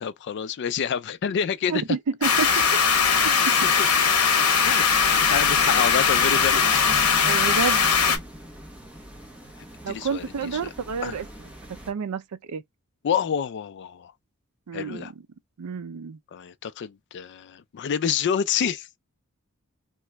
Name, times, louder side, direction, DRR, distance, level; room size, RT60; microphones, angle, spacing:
voice 1, 0.0-1.8 3.6-3.9 4.6-6.8 9.8-10.7 11.0-11.2 13.0-14.1 14.7-15.1 16.3-18.9, left 7 dB, 50° left, 0.4 m, -28 dB
voice 2, 1.7-2.8 3.2-3.5 5.4-5.5 7.2-8.2 9.8-11.3 11.9-12.6 14.7-15.1 15.6-16.2, right 6 dB, 75° right, 0.4 m, -30 dB
sound 1, 2.2-8.2, left 6 dB, 80° left, 0.9 m, -20 dB
sound 2, 4.9-11.9, equal, 5° right, 0.9 m, -41 dB
2.9 x 2.4 x 3.2 m
head